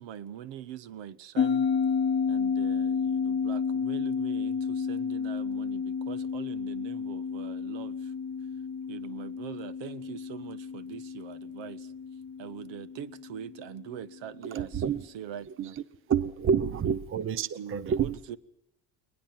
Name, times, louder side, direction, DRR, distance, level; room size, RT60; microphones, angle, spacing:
voice 1, 0.0-1.7 2.3-8.1 8.9-11.9 12.4-15.8 16.7-17.0 17.5-18.4, right 9 dB, 70° right, 1.4 m, -43 dB
sound 1, 1.4-14.1, left 6 dB, 25° left, 1.1 m, -31 dB
voice 2, 14.5-15.1 15.6-15.8 16.1-18.2, right 7 dB, 25° right, 0.8 m, -28 dB
21.5 x 20.0 x 7.4 m
cardioid pair, 145°, 47 cm